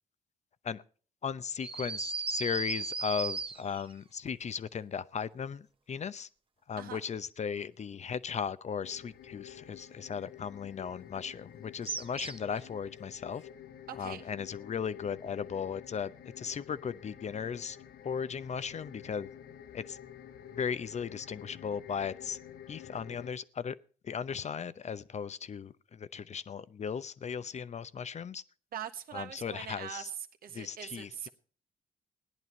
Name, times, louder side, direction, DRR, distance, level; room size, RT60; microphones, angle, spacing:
voice 1, 1.2-6.3 6.7-13.4 14.0-17.8 18.0-19.3 19.7-20.0 20.6-22.4 22.7-23.8 24.0-28.4 29.1-30.1 30.5-31.3, left 7 dB, 45° left, 0.8 m, -37 dB
sound 1, 1.6-3.9 11.9-12.6, right 4 dB, 35° right, 1.2 m, -36 dB
sound 2, 8.8-23.3, left 10 dB, 75° left, 1.1 m, -50 dB
voice 2, 13.9-14.2 28.7-30.1 30.4-31.3, right 9 dB, 65° right, 1.4 m, -42 dB
17.0 x 10.5 x 4.3 m
hypercardioid pair, 45°, 16 cm